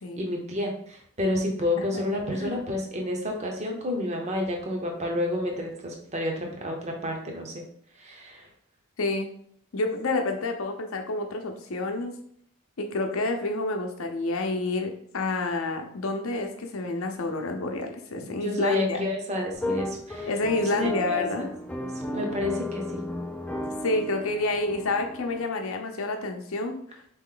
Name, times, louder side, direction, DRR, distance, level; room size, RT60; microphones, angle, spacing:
voice 1, 0.2-7.6 8.0-8.5 18.1-20.3 20.6-21.5 21.8-23.0, left 1 dB, 30° right, 2 dB, 0.8 m, -30 dB
voice 2, 9.0-9.3 9.7-12.1 12.8-19.1 20.3-21.5 23.8-27.0, left 2 dB, 70° left, 4 dB, 0.6 m, -29 dB
sound 1, 19.5-25.4, left 1 dB, 5° left, 0.3 m, -34 dB
4.1 x 3.0 x 3.8 m, 0.65 s
head